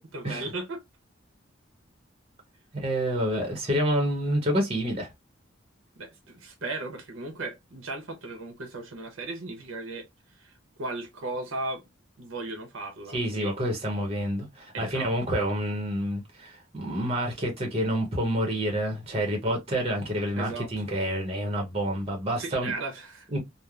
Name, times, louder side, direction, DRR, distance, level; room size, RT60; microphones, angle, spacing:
voice 1, 0.1-0.8 6.0-10.1 10.8-11.8 12.2-13.5 14.7-15.1 20.4-20.7 22.4-23.3, right 2 dB, 85° right, 0.7 m, -36 dB
voice 2, 2.7-5.1 13.1-22.7 23.3-23.4, equal, 30° right, 0.8 m, -28 dB
3.1 x 2.0 x 2.4 m
head